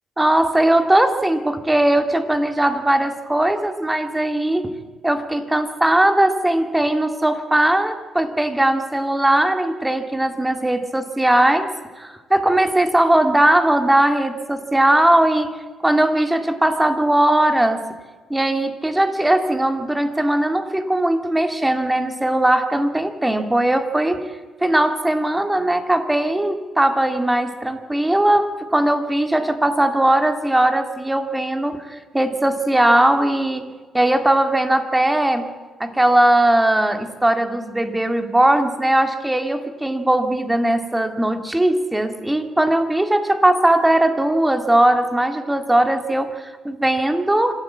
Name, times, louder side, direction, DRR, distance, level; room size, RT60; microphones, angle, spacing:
voice 1, 0.2-4.7 5.0-11.7 12.0-15.5 15.8-17.9 18.3-24.3 24.6-33.6 33.9-35.5 35.8-47.5, right 1 dB, 10° right, 7 dB, 2.2 m, -19 dB
26.0 x 13.0 x 8.3 m, 1.4 s
cardioid pair, 90°, 0 cm